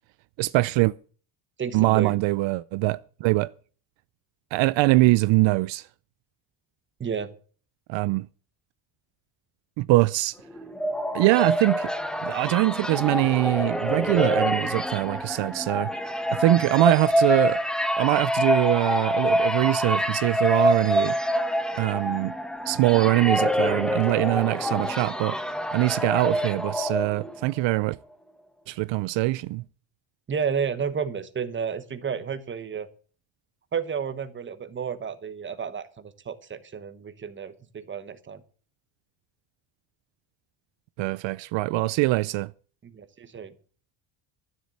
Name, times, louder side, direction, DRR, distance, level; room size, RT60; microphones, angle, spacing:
voice 1, 0.4-0.9 1.7-3.5 4.5-5.9 7.9-8.3 9.8-10.4 11.1-11.9 12.2-15.9 16.3-17.6 18.0-21.2 21.8-22.3 22.7-25.4 25.7-28.0 28.7-29.6 41.0-42.5, right 20 dB, 70° right, 0.5 m, -23 dB
voice 2, 1.6-2.1 7.0-7.3 30.3-32.9 33.7-38.4 42.8-43.5, right 6 dB, 25° right, 1.2 m, -31 dB
sound 1, 10.5-27.5, equal, ahead, 0.8 m, -26 dB
12.5 x 7.6 x 8.3 m
cardioid pair, 155°, 47 cm